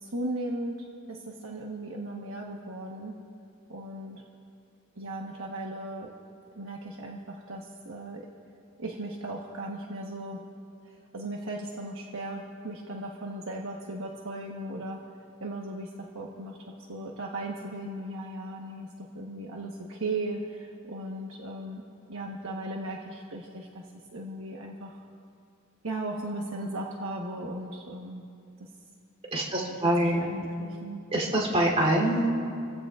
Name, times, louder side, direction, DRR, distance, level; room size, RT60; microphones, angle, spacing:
voice 1, 0.0-3.2 3.7-4.2 5.0-6.1 6.5-8.3 8.8-10.4 10.8-15.0 15.4-16.6 16.9-21.8 22.1-23.9 24.1-25.0 25.8-28.3 28.6-28.7 29.5-31.0, right 1 dB, 65° right, -1 dB, 1.2 m, -37 dB
voice 2, 29.3-30.3 31.1-32.3, right 1 dB, 30° right, -1 dB, 3.4 m, -25 dB
28.0 x 16.0 x 2.5 m, 2.4 s
head